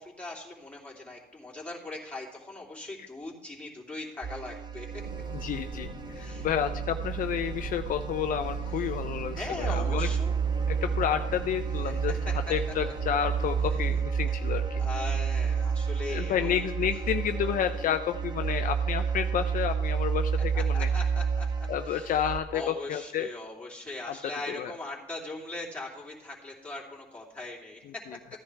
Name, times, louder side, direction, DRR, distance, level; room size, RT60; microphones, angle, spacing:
voice 1, 0.0-5.0 6.1-6.5 9.3-10.4 11.8-11.9 12.3-12.4 14.8-16.6 20.7-22.2 22.5-28.0, left 2 dB, 10° left, -4 dB, 2.9 m, -40 dB
sound 1, 4.2-22.4, right 6 dB, 25° right, 0.8 m, -30 dB
sound 2, 4.9-13.9, equal, 55° right, 3.3 m, -44 dB
voice 2, 5.3-10.1 10.7-14.8 16.1-20.9 21.7-23.3 24.1-24.2 24.5-24.7 27.8-28.4, left 9 dB, 55° left, 7 dB, 0.6 m, -30 dB
15.0 x 10.0 x 3.4 m, 1.0 s
cardioid pair, 110°, 17 cm